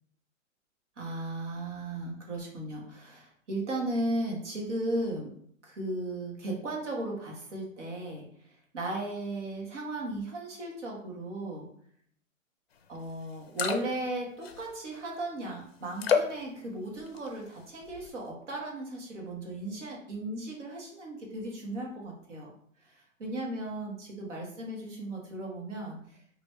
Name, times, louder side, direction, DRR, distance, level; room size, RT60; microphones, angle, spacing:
voice 1, 1.0-5.3 5.6-11.7 12.9-22.5 22.8-26.2, right 1 dB, 65° right, -1 dB, 1.3 m, -36 dB
sound 1, 12.9-13.0 13.3-14.1 14.4-14.9 16.0-16.4 17.0-17.4 17.8-18.1, left 6 dB, 50° left, 0.5 m, -29 dB
2.9 x 2.5 x 3.1 m, 0.64 s
hypercardioid pair, 165°, 39 cm